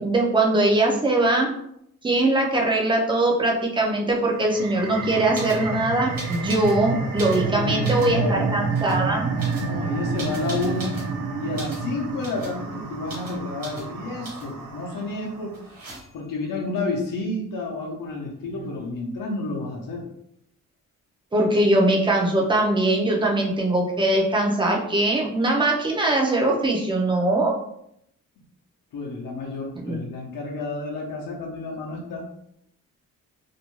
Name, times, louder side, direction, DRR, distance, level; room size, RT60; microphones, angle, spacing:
voice 1, 0.0-1.5 2.0-9.3 21.3-27.5 29.8-30.0, right 2 dB, 15° right, -1 dB, 0.4 m, -21 dB
sound 1, 4.3-15.5, right 4 dB, 70° right, 0.5 m, -29 dB
sound 2, 5.3-5.6 6.1-6.8 7.1-8.2 8.7-9.0 9.4-11.1 11.5-11.9 12.2-12.6 13.1-13.4 13.6-13.9 14.2-14.6 15.5-16.3 18.1-18.2 18.4-19.0, right 2 dB, 50° right, 1.2 m, -39 dB
voice 2, 7.2-8.6 9.5-11.1 11.4-15.6 16.1-20.0 28.9-32.3, left 3 dB, 75° left, -2 dB, 0.7 m, -30 dB
2.6 x 2.1 x 3.0 m, 0.74 s
wide cardioid pair, 160°, 33 cm